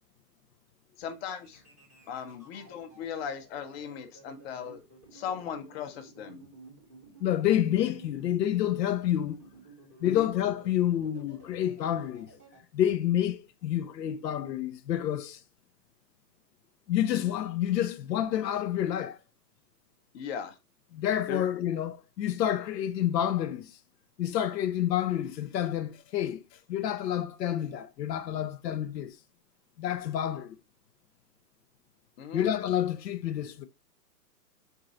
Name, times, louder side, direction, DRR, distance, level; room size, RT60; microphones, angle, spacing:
voice 1, 1.0-1.6 2.1-4.8 5.1-6.4 10.0-10.3 20.1-20.6 21.3-21.4 32.2-32.4, left 7 dB, 40° left, 0.8 m, -38 dB
sound 1, 1.4-12.6, right 3 dB, 10° right, 0.3 m, -53 dB
voice 2, 7.2-9.4 10.0-12.3 12.7-15.4 16.9-19.2 20.9-23.8 24.2-26.4 26.7-29.2 29.8-30.5 32.3-33.7, left 11 dB, 85° left, 0.6 m, -28 dB
4.5 x 2.6 x 3.9 m
hypercardioid pair, 135°, 49 cm